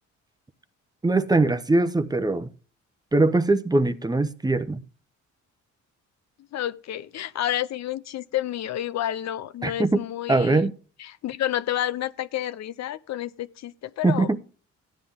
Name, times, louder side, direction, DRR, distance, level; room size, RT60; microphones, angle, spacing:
voice 1, 1.0-2.5 3.1-4.8 9.6-10.0 10.3-10.7 14.0-14.4, right 2 dB, 15° right, 0.8 m, -21 dB
voice 2, 6.5-10.7 11.0-14.3, left 12 dB, 60° left, 0.5 m, -30 dB
14.0 x 9.8 x 3.6 m
cardioid pair, 90°, 30 cm